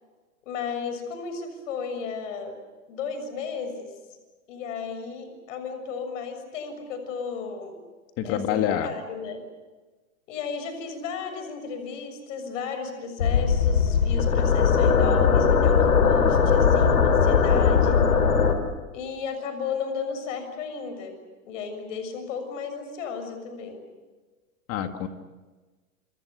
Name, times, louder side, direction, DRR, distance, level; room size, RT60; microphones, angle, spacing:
voice 1, 0.4-2.5 2.9-3.9 4.5-7.8 8.2-9.4 10.3-18.0 18.9-21.2 21.5-23.9, left 6 dB, 60° left, 8 dB, 6.9 m, -34 dB
voice 2, 8.2-8.9 24.7-25.1, left 10 dB, 30° left, 7 dB, 2.2 m, -26 dB
sound 1, 13.2-18.6, left 6 dB, 85° left, 4.2 m, -19 dB
28.5 x 27.0 x 6.8 m, 1.3 s
hypercardioid pair, 135°, 43 cm